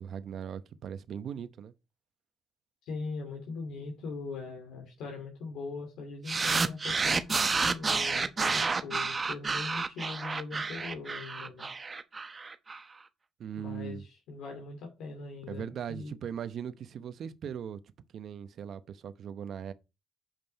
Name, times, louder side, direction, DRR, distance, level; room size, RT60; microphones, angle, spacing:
voice 1, 0.0-1.7 13.4-14.0 15.5-17.8 18.1-19.7, right 8 dB, 65° right, 0.8 m, -39 dB
voice 2, 2.8-11.7 13.6-16.2, left 4 dB, 85° left, 2.9 m, -41 dB
sound 1, 6.3-12.8, right 4 dB, 35° right, 0.9 m, -30 dB
7.5 x 5.5 x 4.2 m
cardioid pair, 75°, 0 cm